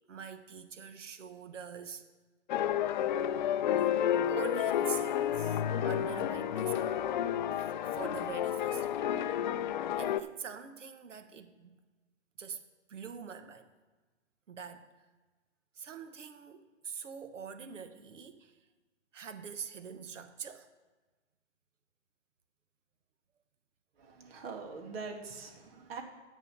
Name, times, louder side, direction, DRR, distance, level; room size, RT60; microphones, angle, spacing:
voice 1, 0.1-2.0 3.8-3.9 4.3-7.0 7.8-9.0 10.0-11.7 12.4-12.6 12.9-13.7 14.5-14.9 15.7-18.6 19.1-20.7, right 6 dB, 85° right, 1.0 m, -44 dB
sound 1, 2.5-10.2, left 10 dB, 40° left, 0.4 m, -31 dB
voice 2, 24.0-26.0, right 4 dB, 55° right, 2.0 m, -43 dB
8.4 x 7.0 x 5.8 m
hypercardioid pair, 135°, 36 cm